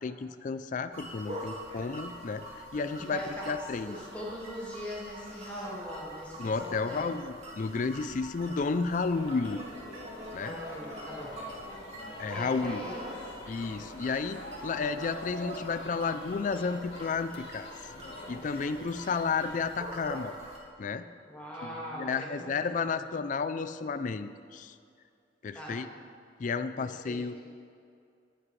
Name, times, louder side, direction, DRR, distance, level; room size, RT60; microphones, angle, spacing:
voice 1, 0.0-4.0 6.4-9.6 10.3-10.5 12.2-12.8 13.5-17.7 18.3-20.3 20.8-21.0 21.6-24.7 25.4-25.9 26.4-27.3, left 4 dB, 45° left, 11 dB, 0.4 m, -32 dB
sound 1, 0.9-20.6, equal, 40° right, 1.9 m, -45 dB
voice 2, 3.0-3.5 3.8-7.1 10.3-11.4 12.2-13.1 21.3-23.1 25.5-25.8 26.8-27.2, equal, 10° left, -7 dB, 1.8 m, -41 dB
sound 2, 9.1-19.7, left 1 dB, 85° left, 1.5 m, -45 dB
18.0 x 7.5 x 3.2 m, 2.4 s
head